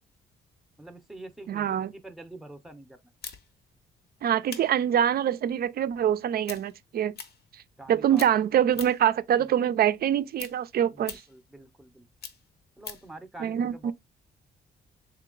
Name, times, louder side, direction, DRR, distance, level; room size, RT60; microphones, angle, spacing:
voice 1, 0.8-3.0 7.8-8.2 10.9-12.1 12.8-13.9, right 2 dB, ahead, 0.6 m, -46 dB
voice 2, 1.5-1.9 4.2-7.2 7.5-7.6 7.9-11.2 13.4-13.9, right 10 dB, 50° right, 0.4 m, -25 dB
sound 1, 3.2-7.9 8.1-9.2 9.5-13.2, left 5 dB, 55° left, 0.7 m, -44 dB
3.7 x 2.8 x 3.8 m
cardioid pair, 90°, 20 cm